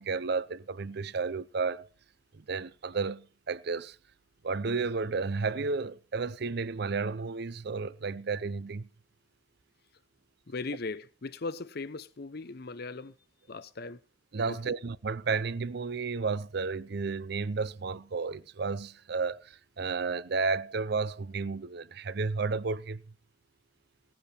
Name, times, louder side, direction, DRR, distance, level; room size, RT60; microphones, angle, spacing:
voice 1, 0.0-1.9 2.3-4.0 4.4-8.9 14.3-23.0, right 4 dB, 60° right, 0.6 m, -32 dB
voice 2, 10.5-13.1 13.5-14.0 14.5-14.8, left 3 dB, 55° left, 0.7 m, -38 dB
17.0 x 10.5 x 4.3 m
head